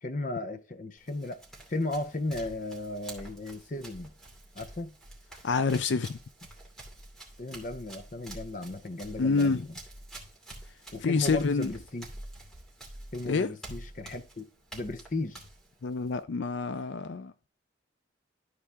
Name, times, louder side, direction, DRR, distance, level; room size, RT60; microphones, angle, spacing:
voice 1, 0.0-1.4 1.7-4.1 4.5-4.9 7.4-9.8 10.9-12.1 13.1-14.4 14.7-15.4, left 2 dB, 45° left, 0.8 m, -35 dB
Run, 1.0-16.2, right 1 dB, 5° left, 2.5 m, -48 dB
voice 2, 5.4-6.2 9.2-9.7 11.0-11.7 13.3-13.5 15.8-17.5, left 4 dB, 75° left, 0.5 m, -27 dB
12.5 x 4.8 x 3.5 m
head